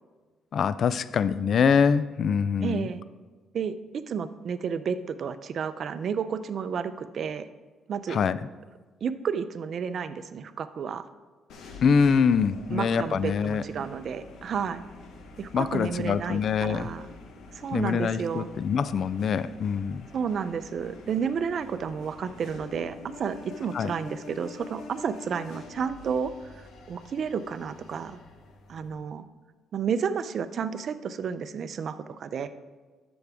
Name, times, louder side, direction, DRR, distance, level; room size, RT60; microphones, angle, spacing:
voice 1, 0.5-2.9 8.1-8.4 11.8-13.9 15.5-16.9 17.7-20.1 23.7-23.9, left 6 dB, 55° left, 16 dB, 0.3 m, -24 dB
voice 2, 2.6-3.0 3.5-7.5 7.9-8.2 9.0-11.0 12.7-14.8 15.4-17.1 17.5-18.5 20.1-28.2 28.7-29.2 29.7-32.5, right 6 dB, 55° right, 12 dB, 0.5 m, -31 dB
sound 1, 11.5-28.9, left 3 dB, 75° left, 1.1 m, -47 dB
11.5 x 7.0 x 3.5 m, 1.4 s
cardioid pair, 100°, 0 cm